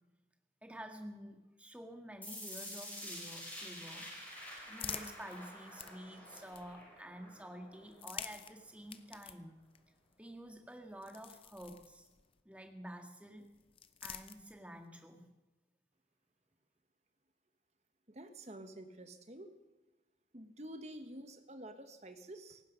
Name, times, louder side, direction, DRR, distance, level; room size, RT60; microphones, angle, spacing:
voice 1, 0.6-4.1 4.6-9.5 10.2-12.1 12.5-13.5 14.0-15.3, equal, 5° right, 4 dB, 1.8 m, -50 dB
sound 1, 2.2-8.2, left 1 dB, 10° left, 5.0 m, -48 dB
sound 2, 4.0-7.0 7.8-12.4 13.4-14.9, left 8 dB, 30° left, 0.7 m, -50 dB
voice 2, 18.1-19.5 20.3-22.6, right 1 dB, 40° right, 7 dB, 1.5 m, -49 dB
18.0 x 15.5 x 5.2 m, 1.1 s
head